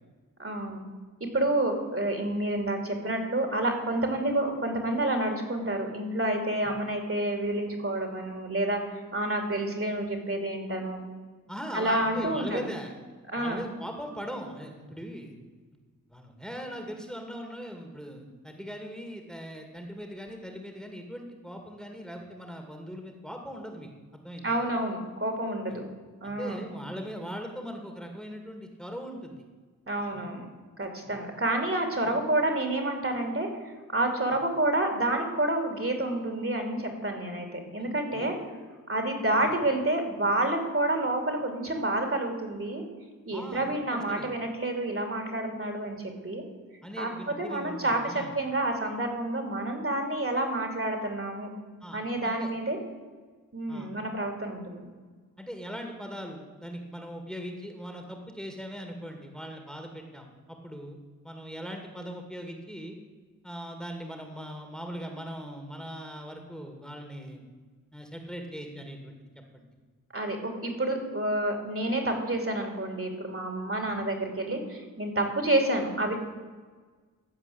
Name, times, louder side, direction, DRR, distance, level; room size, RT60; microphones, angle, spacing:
voice 1, 0.4-0.8 1.3-11.0 11.7-12.6 13.3-13.6 24.4-25.8 26.2-26.6 29.9-30.5 30.8-33.5 33.9-38.3 38.9-42.8 43.3-46.4 47.0-51.5 51.9-52.8 53.5-54.9 70.1-76.2, right 1 dB, 40° right, 4 dB, 2.7 m, -29 dB
voice 2, 11.5-12.9 13.3-15.4 16.1-24.6 25.7-25.8 26.2-29.4 30.1-30.3 31.1-31.2 32.0-32.1 37.8-38.5 43.3-44.3 46.8-48.3 51.8-52.5 53.7-53.9 55.4-61.0 61.2-63.0 63.4-67.5 67.9-69.6, equal, ahead, 3 dB, 2.1 m, -40 dB
14.5 x 4.9 x 8.5 m, 1.4 s
cardioid pair, 40°, 34 cm